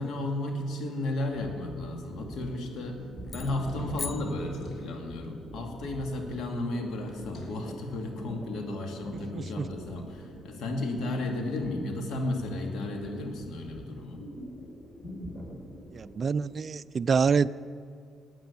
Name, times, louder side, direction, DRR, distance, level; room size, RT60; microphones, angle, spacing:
voice 1, 0.0-3.0 3.3-14.2, left 2 dB, 80° left, 3 dB, 2.3 m, -33 dB
sound 1, 1.3-16.7, equal, 5° left, 3.9 m, -45 dB
sound 2, 3.3-4.9 7.0-7.7, left 1 dB, 60° left, 2.8 m, -48 dB
sound 3, 3.3-5.2, left 5 dB, 40° left, 0.3 m, -42 dB
voice 2, 9.3-9.6 15.9-17.5, right 5 dB, 45° right, 17 dB, 0.4 m, -26 dB
16.5 x 9.1 x 7.1 m, 2.1 s
cardioid pair, 90°, 0 cm